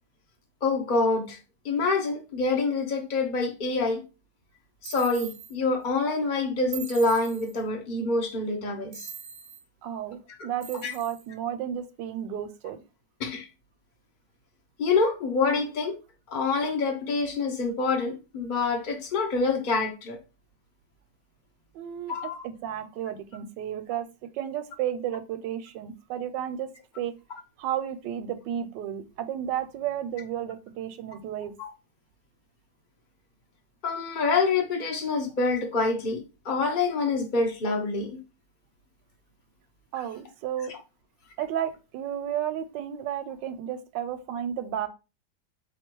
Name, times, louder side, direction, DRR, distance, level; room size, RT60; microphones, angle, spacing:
voice 1, 0.6-1.4 1.6-4.0 4.8-9.1 10.4-10.5 10.8-10.9 13.2-13.5 14.8-16.0 16.3-20.2 22.1-22.4 31.6-31.7 33.8-38.2, left 3 dB, 55° left, 0.5 m, -26 dB
sound 1, 4.8-5.5 6.7-7.6 8.9-9.6 10.6-11.3, right 8 dB, 70° right, 0.8 m, -42 dB
voice 2, 9.8-12.8 21.7-24.1 24.3-26.7 27.0-27.1 27.6-31.5 39.9-40.7 41.4-44.9, right 10 dB, 90° right, 1.3 m, -32 dB
3.8 x 3.0 x 4.5 m
omnidirectional pair, 1.9 m